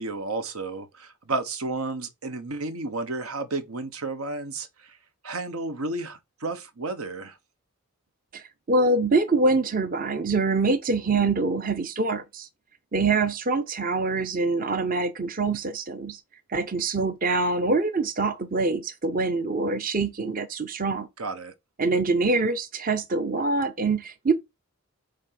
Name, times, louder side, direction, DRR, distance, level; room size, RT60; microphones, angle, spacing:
voice 1, 0.0-5.0 5.2-7.4 21.2-21.5, right 3 dB, 85° right, 1.2 m, -32 dB
voice 2, 8.3-12.5 12.9-16.2 16.5-21.1 21.8-24.3, right 3 dB, 40° right, 0.7 m, -25 dB
8.6 x 3.4 x 5.8 m
head